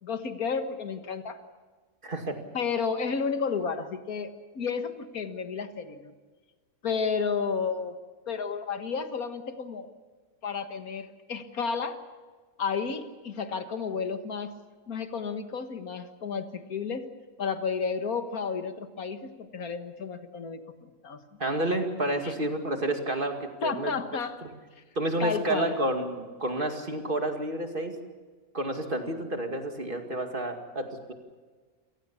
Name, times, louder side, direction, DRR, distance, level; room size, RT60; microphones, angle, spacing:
voice 1, 0.0-1.4 2.5-6.1 6.8-8.0 8.3-9.9 10.4-12.0 12.6-14.6 14.9-17.1 17.4-21.2 22.2-22.3 23.6-24.4 25.2-25.8, left 5 dB, 85° left, 8 dB, 2.0 m, -32 dB
voice 2, 2.0-2.4 21.4-23.9 24.4-24.5 25.0-26.1 26.4-27.9 28.5-31.1, right 1 dB, 35° right, 4 dB, 2.5 m, -30 dB
29.0 x 18.0 x 7.2 m, 1.4 s
omnidirectional pair, 1.5 m